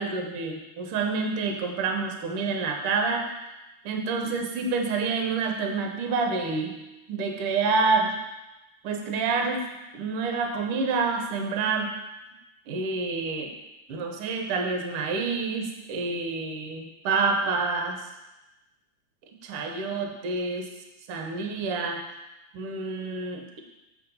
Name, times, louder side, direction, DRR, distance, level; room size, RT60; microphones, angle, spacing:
voice 1, 0.0-3.3 3.8-6.7 7.1-8.2 8.8-9.6 9.9-11.9 12.7-13.5 13.9-18.0 19.4-20.7 21.1-22.0 22.5-23.6, right 4 dB, 70° right, 3 dB, 1.4 m, -28 dB
7.3 x 3.8 x 5.3 m, 0.99 s
omnidirectional pair, 3.3 m